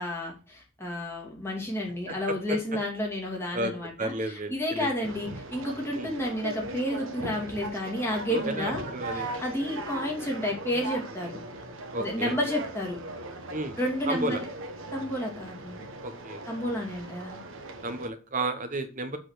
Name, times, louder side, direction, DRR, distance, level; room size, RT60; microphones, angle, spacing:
voice 1, 0.0-8.8 9.1-11.4 12.0-13.0 13.8-14.5 14.9-15.8 16.5-17.4, left 1 dB, 10° left, -2 dB, 2.3 m, -31 dB
voice 2, 2.1-2.6 3.5-3.7 4.0-4.9 5.9-6.1 8.3-9.3 11.9-12.4 13.5-13.7 14.1-14.4 16.0-16.4 17.8-19.2, right 1 dB, 35° right, 9 dB, 1.0 m, -32 dB
Conversation, 5.0-18.1, right 2 dB, 60° right, 1.3 m, -39 dB
7.9 x 4.1 x 6.4 m, 0.35 s
head